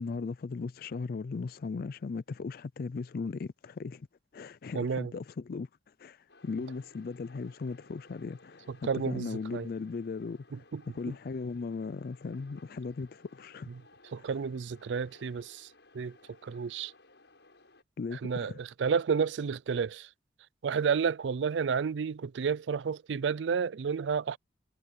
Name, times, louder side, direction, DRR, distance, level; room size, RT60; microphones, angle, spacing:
voice 1, 0.0-4.1 4.3-5.7 6.0-10.7 10.9-13.7 14.2-14.3 18.0-18.6, left 4 dB, 55° left, 0.4 m, -37 dB
voice 2, 4.7-5.1 8.8-9.7 10.5-10.8 11.1-11.2 14.1-15.7 15.9-16.2 16.4-16.9 18.2-20.1 20.6-24.4, right 6 dB, 80° right, 0.4 m, -31 dB
sound 1, 6.3-17.8, left 2 dB, 75° left, 7.8 m, -59 dB
head